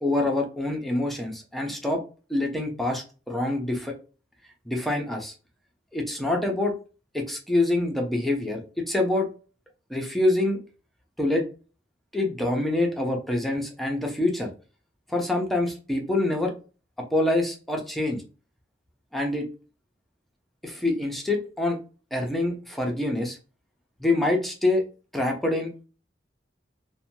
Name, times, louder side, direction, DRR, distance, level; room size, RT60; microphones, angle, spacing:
voice 1, 0.0-2.0 2.3-3.9 4.7-5.3 5.9-6.7 7.1-9.3 9.9-10.6 11.2-11.4 12.1-14.5 15.1-16.5 17.1-18.2 19.1-19.5 20.6-21.8 22.1-23.4 24.0-24.8 25.1-25.9, left 2 dB, ahead, 1 dB, 0.5 m, -25 dB
2.6 x 2.1 x 2.9 m, 0.35 s
head